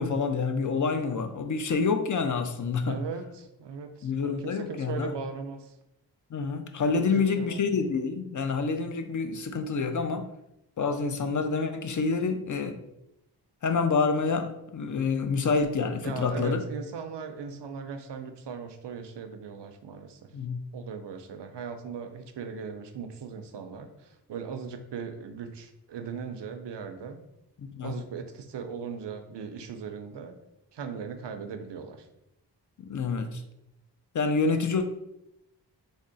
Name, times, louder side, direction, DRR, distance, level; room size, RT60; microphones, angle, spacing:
voice 1, 0.0-3.0 4.0-5.1 6.3-10.3 10.8-12.8 13.6-16.6 20.3-20.6 27.6-28.0 32.8-33.4 34.1-34.8, left 4 dB, 45° left, 7 dB, 0.4 m, -27 dB
voice 2, 2.8-5.7 7.1-7.6 16.0-20.3 20.7-27.2 27.8-30.4 30.7-32.0, right 6 dB, 70° right, 8 dB, 0.5 m, -38 dB
3.5 x 2.0 x 3.8 m, 0.84 s
cardioid pair, 45°, 43 cm